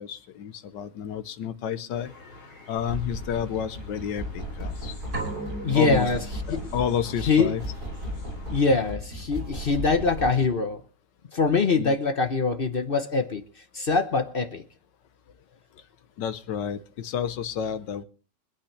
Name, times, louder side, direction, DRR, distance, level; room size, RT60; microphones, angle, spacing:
voice 1, 0.0-2.1 2.7-4.9 5.7-6.1 6.5-7.6 11.7-12.0 16.2-18.0, left 8 dB, 90° left, 1.6 m, -30 dB
sound 1, 1.9-8.9, left 2 dB, 65° left, 4.2 m, -48 dB
sound 2, 2.8-10.5, equal, 60° right, 5.8 m, -36 dB
sound 3, 5.1-6.9, right 2 dB, 85° right, 3.8 m, -36 dB
voice 2, 5.6-6.2 6.5-6.7 7.3-7.5 8.5-10.8 11.3-13.4 13.7-14.6, left 4 dB, 40° left, 0.9 m, -23 dB
24.5 x 8.8 x 3.3 m
omnidirectional pair, 1.9 m